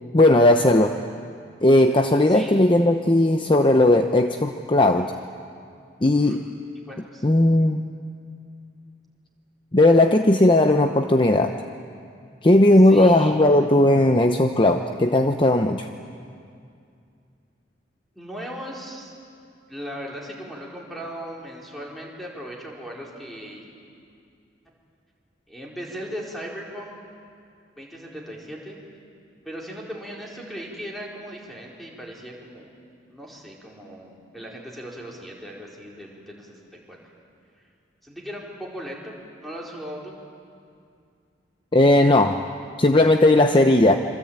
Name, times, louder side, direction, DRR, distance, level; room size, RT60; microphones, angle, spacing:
voice 1, 0.1-0.9 1.6-5.1 6.0-6.4 7.2-7.8 9.7-11.5 12.4-15.9 41.7-42.4 42.8-44.0, left 1 dB, 25° left, 5 dB, 0.8 m, -17 dB
voice 2, 6.0-6.4 6.9-7.2 12.8-13.3 18.1-19.1 19.7-23.8 25.5-26.9 27.8-28.8 29.4-32.7 33.1-36.6 36.9-37.0 38.0-39.1 39.4-40.1, equal, ahead, -3 dB, 4.7 m, -38 dB
27.0 x 25.0 x 8.9 m, 2.4 s
head